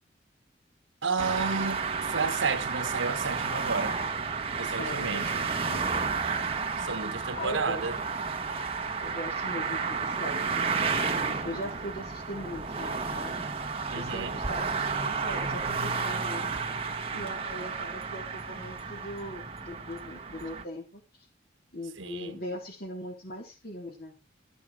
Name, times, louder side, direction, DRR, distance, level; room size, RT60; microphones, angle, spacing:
voice 1, 1.0-4.0 4.6-5.4 6.8-7.9 13.9-14.4 22.0-22.4, right 4 dB, 80° right, 1.5 m, -32 dB
sound 1, 1.2-20.6, right 5 dB, 30° right, 1.5 m, -32 dB
voice 2, 4.8-6.1 6.7-6.9 7.3-7.8 9.0-13.5 13.9-16.6 17.1-21.3 21.7-24.1, equal, 50° left, 3.6 m, -40 dB
14.0 x 6.9 x 4.9 m
head